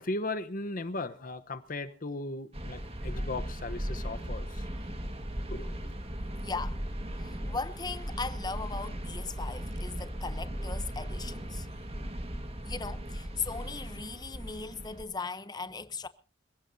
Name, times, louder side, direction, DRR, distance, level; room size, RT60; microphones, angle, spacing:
voice 1, 0.0-4.7 5.5-6.0, left 2 dB, 45° left, 1.0 m, -37 dB
sound 1, 2.5-15.0, equal, 30° right, 1.8 m, -37 dB
voice 2, 6.4-6.9 7.2-11.7 12.6-16.1, left 4 dB, 20° left, 0.8 m, -38 dB
26.5 x 16.5 x 2.7 m
head